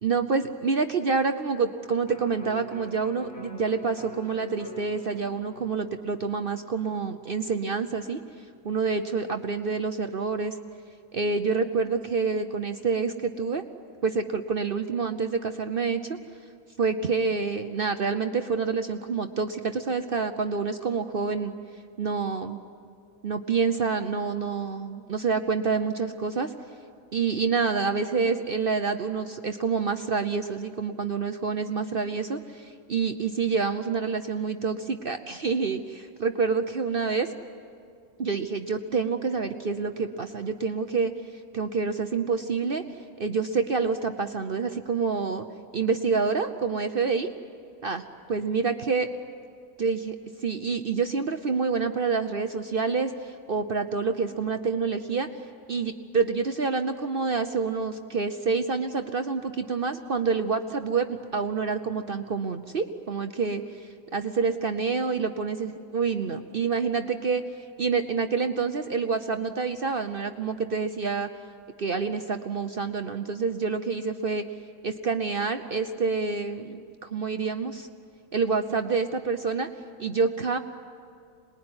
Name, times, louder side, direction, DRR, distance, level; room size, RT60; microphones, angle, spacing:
voice 1, 0.0-8.2 8.6-10.6 11.1-13.6 14.0-16.2 16.8-21.5 22.0-22.6 23.2-26.5 27.1-37.3 38.2-41.1 41.5-42.8 43.2-45.5 45.7-47.3 47.8-48.0 48.3-49.1 49.8-55.3 55.7-71.3 71.8-74.4 74.8-77.9 78.3-79.7 80.0-80.6, right 5 dB, 50° right, 7 dB, 0.7 m, -27 dB
Electric guitar, 2.0-8.3 8.7-8.8, left 4 dB, 85° left, 2.6 m, -48 dB
26.5 x 20.5 x 9.7 m, 2.4 s
omnidirectional pair, 1.7 m